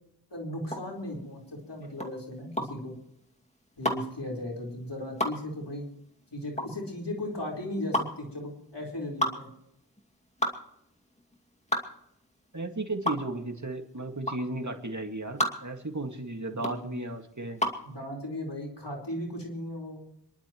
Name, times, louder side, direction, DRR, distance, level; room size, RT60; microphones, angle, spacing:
voice 1, 0.3-2.9 3.8-5.9 6.3-9.5 16.5-17.0 17.8-20.0, left 1 dB, 80° left, -2 dB, 4.6 m, -36 dB
sound 1, 0.6-17.9, equal, 15° left, 2.4 m, -33 dB
voice 2, 12.5-17.6, right 2 dB, 45° right, 4 dB, 2.1 m, -35 dB
27.0 x 11.5 x 3.1 m, 0.77 s
wide cardioid pair, 40°, 41 cm